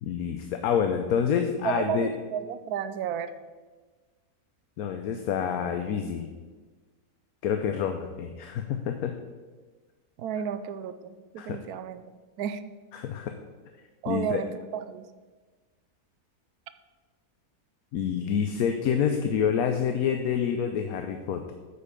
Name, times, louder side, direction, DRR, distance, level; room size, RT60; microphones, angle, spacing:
voice 1, 0.0-2.1 4.8-6.3 7.4-9.1 11.4-11.6 12.9-13.3 14.1-14.4 17.9-21.5, left 7 dB, 75° left, 6 dB, 1.1 m, -27 dB
voice 2, 1.6-3.3 10.2-12.0 12.4-12.6 14.0-15.1, right 8 dB, 85° right, 11 dB, 1.1 m, -32 dB
8.2 x 5.4 x 6.7 m, 1.3 s
omnidirectional pair, 1.6 m